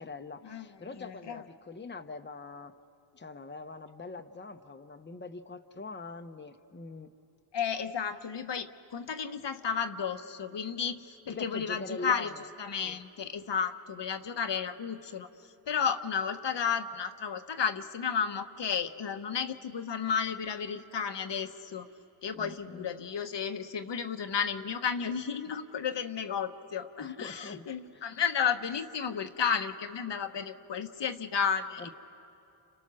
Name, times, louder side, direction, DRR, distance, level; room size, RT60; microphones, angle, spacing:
voice 1, 0.0-2.7 3.1-7.1 11.3-12.5 12.8-13.0 22.3-22.9 27.0-27.7 27.9-28.0 31.8-31.9, left 3 dB, 20° left, 6 dB, 1.0 m, -43 dB
voice 2, 1.0-1.4 7.5-21.9 22.2-31.9, left 7 dB, 60° left, 7 dB, 1.1 m, -33 dB
30.0 x 27.0 x 6.2 m, 2.7 s
cardioid pair, 50°, 49 cm